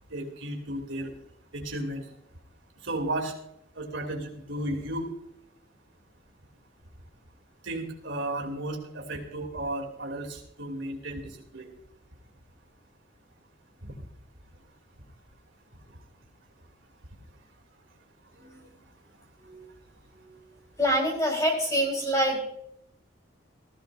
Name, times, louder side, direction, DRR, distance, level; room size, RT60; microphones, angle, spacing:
voice 1, 0.1-1.1 1.5-2.0 2.8-3.3 3.8-5.1 7.6-11.7 13.8-14.0 15.9-16.0, right 1 dB, 70° right, 1 dB, 2.8 m, -34 dB
voice 2, 20.8-22.4, equal, 15° left, 0 dB, 3.8 m, -26 dB
18.0 x 15.0 x 2.6 m, 0.74 s
head